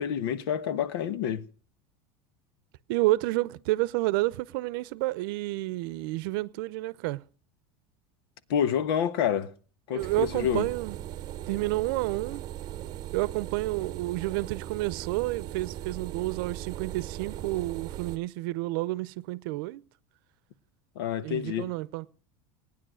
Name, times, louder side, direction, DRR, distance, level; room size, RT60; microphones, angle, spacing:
voice 1, 0.0-1.4 8.5-9.5 9.9-10.6 20.9-21.7, left 9 dB, 85° left, 1.3 m, -28 dB
voice 2, 2.9-7.2 9.9-11.0 11.5-12.4 13.1-19.8 21.2-22.1, right 19 dB, 70° right, 0.7 m, -30 dB
sound 1, 10.0-18.2, right 12 dB, 35° right, 0.8 m, -39 dB
18.5 x 9.8 x 6.3 m
supercardioid pair, 155°, 12 cm